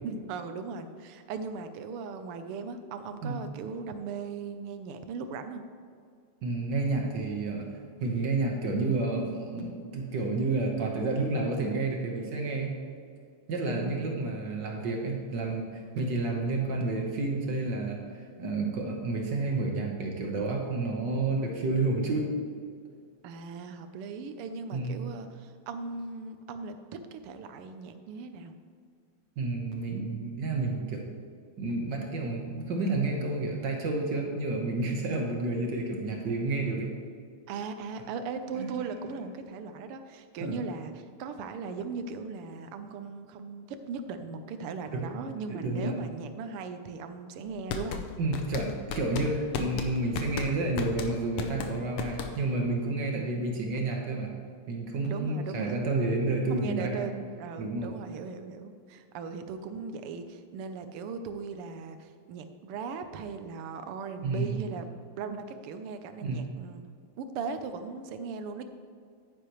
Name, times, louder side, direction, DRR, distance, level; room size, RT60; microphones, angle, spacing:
voice 1, 0.0-5.6 13.7-14.6 23.2-28.5 37.5-48.1 55.1-55.8 56.5-64.8 65.2-66.8 67.2-68.7, right 5 dB, 90° right, 9 dB, 1.6 m, -38 dB
voice 2, 6.4-7.7 8.0-12.8 13.5-22.3 24.7-25.0 29.4-31.0 31.6-36.9 38.5-38.7 40.4-40.6 44.9-45.1 45.5-46.0 48.2-54.3 54.7-57.0 57.6-57.9 64.2-64.6 66.2-66.4, right 2 dB, 60° right, 1 dB, 1.6 m, -30 dB
sound 1, 47.5-52.6, left 6 dB, 90° left, 1.7 m, -35 dB
10.0 x 9.6 x 3.1 m, 2.2 s
omnidirectional pair, 2.4 m